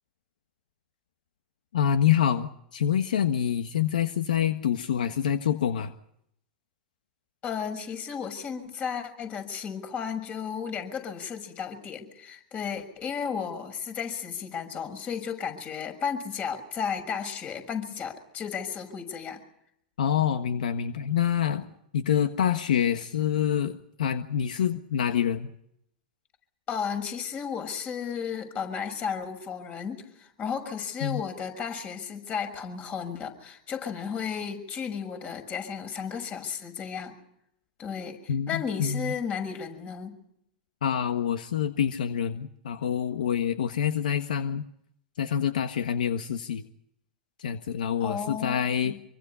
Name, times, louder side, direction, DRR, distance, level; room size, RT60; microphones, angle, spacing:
voice 1, 1.7-5.9 20.0-21.7 21.9-25.5 31.0-31.2 38.3-39.1 40.8-44.6 45.2-46.6 47.4-48.9, left 9 dB, 75° left, 9 dB, 1.4 m, -26 dB
voice 2, 7.4-19.4 26.7-37.1 37.8-40.1 48.0-49.0, left 7 dB, 35° left, 8 dB, 6.5 m, -34 dB
26.5 x 24.0 x 5.7 m, 0.74 s
hypercardioid pair, 105°, 4 cm